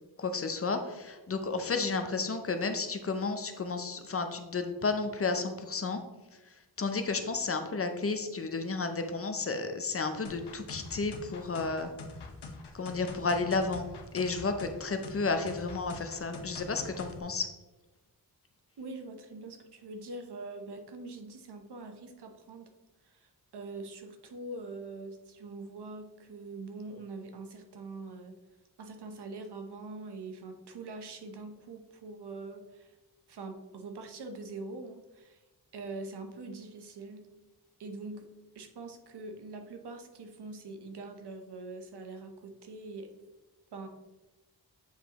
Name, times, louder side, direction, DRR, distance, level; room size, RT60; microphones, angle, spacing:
voice 1, 0.2-6.0 6.8-11.9 12.7-13.8 14.1-17.5, left 4 dB, 35° left, 7 dB, 0.6 m, -32 dB
sound 1, 10.2-17.2, left 3 dB, 90° left, 0.9 m, -44 dB
voice 2, 18.8-22.7 23.1-28.4 28.8-32.9 33.3-35.4 35.7-37.2 37.8-38.2 38.5-43.1 43.7-43.9, right 3 dB, 80° right, 6 dB, 0.9 m, -43 dB
8.2 x 5.0 x 3.0 m, 1.1 s
wide cardioid pair, 160°, 39 cm